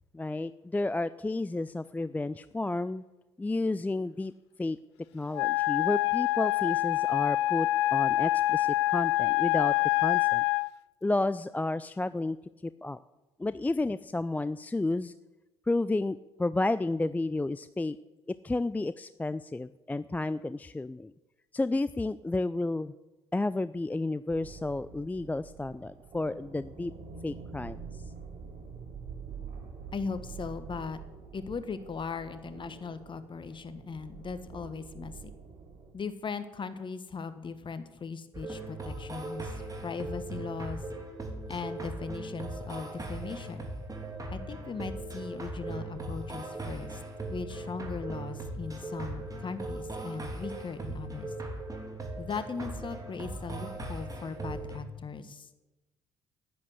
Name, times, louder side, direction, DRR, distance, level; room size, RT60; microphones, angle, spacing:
voice 1, 0.1-3.0 3.4-4.3 4.6-4.8 5.1-9.7 10.0-10.4 11.0-12.4 12.6-13.0 13.4-15.1 15.7-18.0 18.3-21.1 21.5-22.9 23.3-26.9 27.2-28.0, left 2 dB, 10° left, 15 dB, 0.4 m, -31 dB
Wind instrument woodwind instrument, 5.3-10.7, left 17 dB, 80° left, 0.4 m, -26 dB
sound 1, 24.3-35.9, right 5 dB, 55° right, 2.7 m, -46 dB
voice 2, 29.9-31.0 31.3-35.3 35.9-39.5 39.8-40.8 41.5-43.7 44.3-47.0 47.3-51.3 52.2-55.5, left 5 dB, 35° left, 11 dB, 1.5 m, -38 dB
sound 2, 38.3-54.8, right 2 dB, 25° right, 3.1 m, -39 dB
10.5 x 10.0 x 8.1 m, 1.1 s
hypercardioid pair, 55°, 14 cm